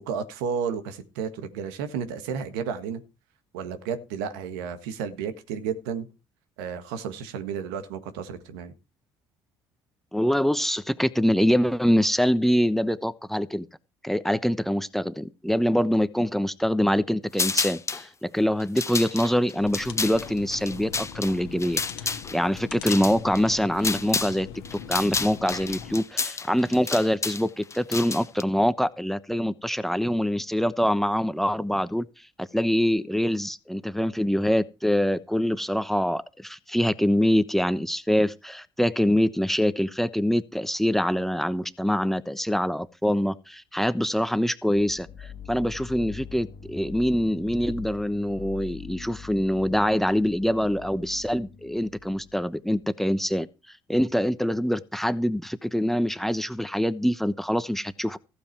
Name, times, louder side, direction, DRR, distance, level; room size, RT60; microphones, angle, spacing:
voice 1, 0.1-3.0 3.5-6.1 6.6-8.7, right 7 dB, 80° right, 1.7 m, -32 dB
voice 2, 10.1-13.7 14.0-24.5 24.9-32.1 32.4-53.5 53.9-58.2, equal, ahead, 1.0 m, -24 dB
sound 1, 17.3-18.1 18.6-24.4 24.6-28.4, left 4 dB, 25° left, 1.1 m, -30 dB
sound 2, 19.5-26.0, left 7 dB, 80° left, 1.7 m, -41 dB
sound 3, 44.7-52.5, left 7 dB, 60° left, 1.9 m, -43 dB
14.5 x 8.6 x 4.6 m
hypercardioid pair, 65°, 11 cm